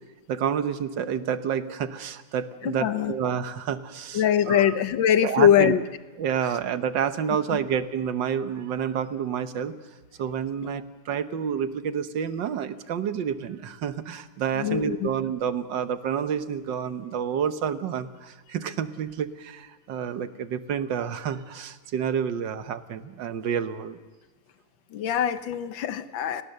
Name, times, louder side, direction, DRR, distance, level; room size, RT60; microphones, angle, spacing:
voice 1, 0.3-4.7 5.2-5.7 6.2-9.7 10.2-24.0, right 8 dB, 75° right, 10 dB, 1.7 m, -29 dB
voice 2, 2.6-3.1 4.1-5.8 7.5-7.6 14.6-15.1 24.9-26.4, left 9 dB, 90° left, 11 dB, 1.7 m, -22 dB
29.0 x 18.5 x 6.7 m, 1.2 s
omnidirectional pair, 2.0 m